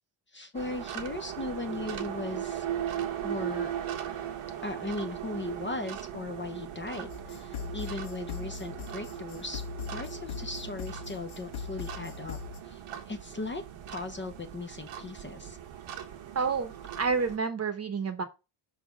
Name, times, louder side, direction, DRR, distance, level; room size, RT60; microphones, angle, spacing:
voice 1, 0.3-2.6 3.2-3.7 4.6-9.6 9.9-12.4 12.6-13.6 13.9-15.6, left 3 dB, 25° left, 0.7 m, -38 dB
sound 1, 0.5-17.4, right 10 dB, 90° right, 1.4 m, -38 dB
sound 2, 7.1-12.6, left 7 dB, 70° left, 1.3 m, -40 dB
voice 2, 16.3-18.2, right 5 dB, 30° right, 1.0 m, -29 dB
5.8 x 4.0 x 5.0 m
cardioid pair, 150°, 49 cm